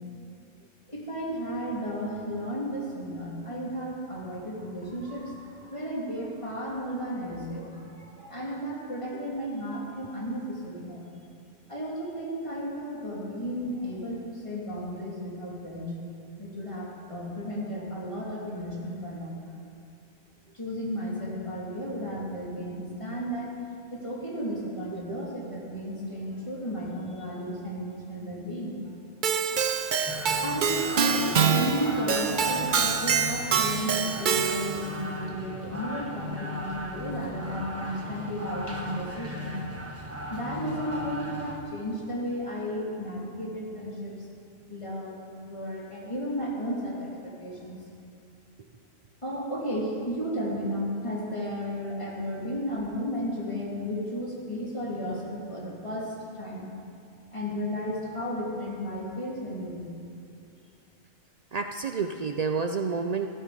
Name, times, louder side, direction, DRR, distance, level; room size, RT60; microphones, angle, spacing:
voice 1, 0.9-11.0 11.7-15.9 16.4-19.4 20.5-23.5 23.9-28.8 30.4-39.6 40.3-44.3 44.7-47.8 49.2-56.7 57.3-59.9, equal, 20° left, -5 dB, 2.9 m, -34 dB
Keyboard (musical), 29.2-34.9, right 6 dB, 45° right, 0.7 m, -26 dB
sound 1, 30.1-41.6, left 1 dB, 10° right, 1.1 m, -37 dB
voice 2, 61.5-63.3, right 5 dB, 80° right, 5 dB, 0.3 m, -29 dB
14.5 x 13.5 x 5.1 m, 2.5 s
omnidirectional pair, 1.4 m